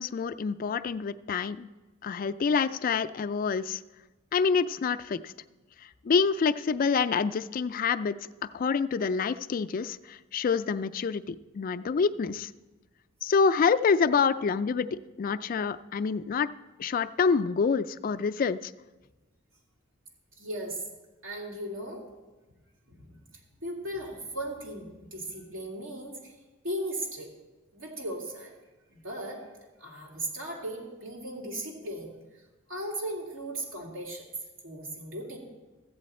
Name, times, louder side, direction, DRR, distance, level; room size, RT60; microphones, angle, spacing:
voice 1, 0.0-1.7 2.0-3.8 4.3-5.3 6.1-8.2 8.5-12.5 13.2-16.5 16.8-18.7, left 5 dB, 45° left, 11 dB, 0.3 m, -27 dB
voice 2, 20.4-20.8 21.2-22.0 22.9-23.2 23.6-26.3 26.6-27.3 27.7-28.5 28.9-29.4 29.8-32.4 32.7-34.3 34.6-35.4, right 1 dB, 85° right, -2 dB, 2.6 m, -37 dB
14.0 x 8.3 x 4.2 m, 1.2 s
head